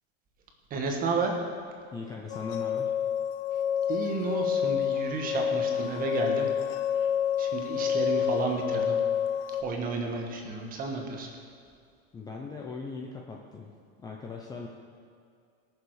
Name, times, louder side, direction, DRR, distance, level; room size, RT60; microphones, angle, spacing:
voice 1, 0.7-1.3 3.9-6.5 6.9-7.1 7.4-9.0 9.6-11.4, right 4 dB, 25° right, 2 dB, 1.5 m, -32 dB
voice 2, 1.8-2.9 12.1-14.7, left 4 dB, 10° left, 0 dB, 0.5 m, -39 dB
sound 1, 2.3-9.6, left 8 dB, 70° left, 1.1 m, -28 dB
19.0 x 6.9 x 4.8 m, 2.4 s
cardioid pair, 170°, 32 cm